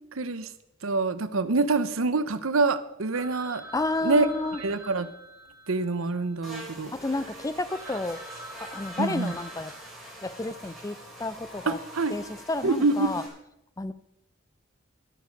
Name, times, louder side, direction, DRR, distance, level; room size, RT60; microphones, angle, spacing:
voice 1, 0.1-0.5 0.8-3.6 4.0-4.3 4.6-5.1 5.7-6.9 9.0-9.3 11.7-12.1 12.6-13.1, right 3 dB, 80° right, 13 dB, 0.8 m, -26 dB
Telephone, 3.1-6.9 7.4-7.5 7.7-10.6, right 1 dB, 15° right, 1.7 m, -46 dB
voice 2, 3.7-4.6 6.9-8.2 8.6-9.7 10.2-11.8 12.1-13.2 13.8-13.9, left 2 dB, 15° left, 15 dB, 0.5 m, -31 dB
Buzz, 6.4-13.3, equal, ahead, 4.0 m, -44 dB
13.0 x 10.0 x 5.3 m, 0.83 s
head